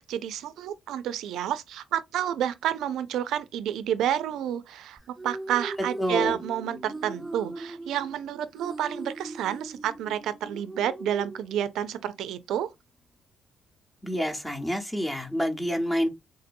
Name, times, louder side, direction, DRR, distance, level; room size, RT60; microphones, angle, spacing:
voice 1, 0.0-5.0 5.2-12.7, right 10 dB, 80° right, 0.4 m, -30 dB
sound 1, 5.0-12.0, right 2 dB, 5° right, 0.5 m, -40 dB
voice 2, 6.0-6.4 14.0-16.1, equal, 10° left, 0.9 m, -28 dB
3.8 x 2.6 x 2.5 m
cardioid pair, 90°, 0 cm